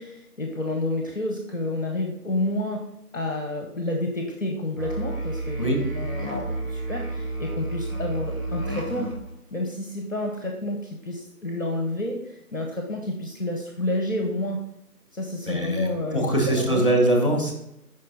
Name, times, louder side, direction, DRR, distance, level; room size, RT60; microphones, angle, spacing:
voice 1, 0.0-9.1 9.5-14.6 15.1-16.8, left 1 dB, 55° left, 2 dB, 0.8 m, -30 dB
Musical instrument, 4.8-9.3, right 2 dB, 60° right, 1.2 m, -31 dB
voice 2, 15.5-17.5, right 1 dB, 35° left, 1 dB, 1.3 m, -22 dB
6.6 x 5.3 x 2.7 m, 0.82 s
figure-of-eight pair, 180°, 47 cm